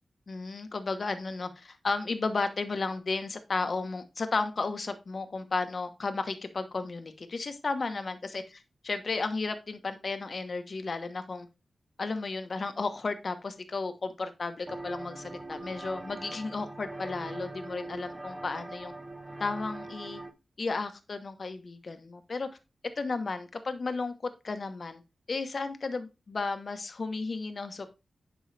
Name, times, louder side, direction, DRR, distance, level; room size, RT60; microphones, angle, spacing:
voice 1, 0.3-8.4 8.8-11.5 12.0-18.9 19.4-20.2 20.6-22.5 23.0-25.0 25.3-27.9, left 3 dB, 50° left, 9 dB, 1.1 m, -33 dB
sound 1, 14.7-20.3, right 2 dB, 15° right, 1.0 m, -42 dB
10.5 x 5.5 x 3.3 m, 0.27 s
wide cardioid pair, 120°, 0 cm